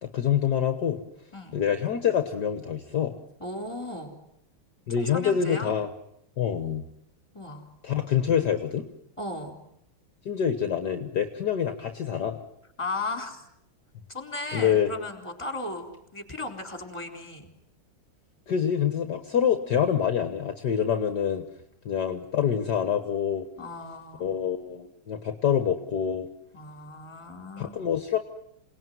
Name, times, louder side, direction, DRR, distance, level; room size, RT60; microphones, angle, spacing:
voice 1, 0.0-1.0 1.5-3.2 4.9-5.9 6.4-6.8 7.8-8.9 10.3-12.4 14.5-14.9 18.5-21.5 21.9-23.5 24.2-26.3 27.6-28.2, left 8 dB, 55° left, 8 dB, 1.9 m, -26 dB
voice 2, 3.4-4.1 4.9-5.7 7.3-7.7 9.2-9.6 12.8-13.4 14.1-17.5 23.6-24.3 26.5-27.7, left 2 dB, 15° left, 5 dB, 4.2 m, -36 dB
28.0 x 19.5 x 9.5 m, 0.79 s
omnidirectional pair, 2.3 m